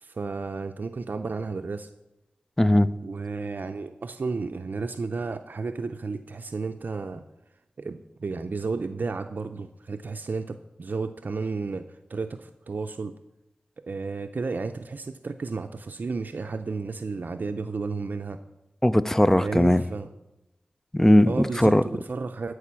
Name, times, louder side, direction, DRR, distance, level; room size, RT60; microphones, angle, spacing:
voice 1, 0.0-1.9 3.0-7.3 7.8-13.1 13.9-18.4 19.4-20.1 21.3-22.5, right 4 dB, 65° right, 8 dB, 0.5 m, -32 dB
voice 2, 2.6-2.9 18.8-19.8 20.9-21.8, left 1 dB, 10° left, 15 dB, 0.4 m, -19 dB
13.0 x 4.9 x 7.4 m, 0.96 s
wide cardioid pair, 70°, 3 cm